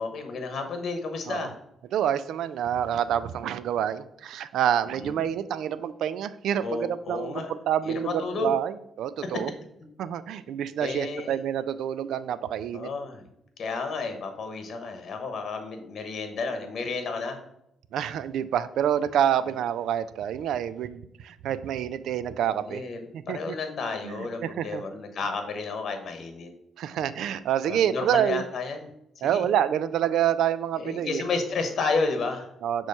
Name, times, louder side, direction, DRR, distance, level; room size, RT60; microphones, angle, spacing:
voice 1, 0.0-1.6 4.9-5.2 6.6-7.5 7.8-8.5 10.8-11.4 12.7-13.3 13.6-17.4 22.4-23.0 23.3-26.5 27.7-28.9 29.2-29.5 30.8-32.5, left 4 dB, 55° left, 6 dB, 1.0 m, -31 dB
voice 2, 1.9-9.5 10.0-12.9 17.9-22.8 23.1-23.6 24.0-24.8 26.8-28.4 29.2-31.2 32.6-32.9, right 10 dB, 75° right, 15 dB, 0.3 m, -27 dB
6.3 x 3.1 x 5.3 m, 0.78 s
cardioid pair, 90°, 0 cm